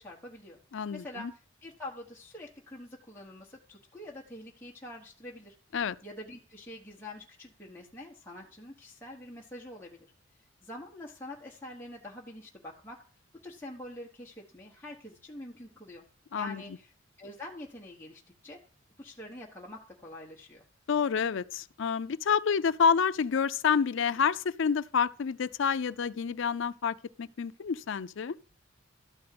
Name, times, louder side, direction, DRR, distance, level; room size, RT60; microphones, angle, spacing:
voice 1, 0.0-0.6 0.9-5.5 6.0-10.1 10.6-13.0 13.4-16.1 16.3-16.9 17.2-18.6 19.0-20.6, left 1 dB, 10° left, 1.3 m, -45 dB
voice 2, 0.7-1.3 5.7-6.0 16.3-16.6 20.9-28.4, left 6 dB, 70° left, 0.5 m, -28 dB
13.0 x 4.3 x 7.7 m
head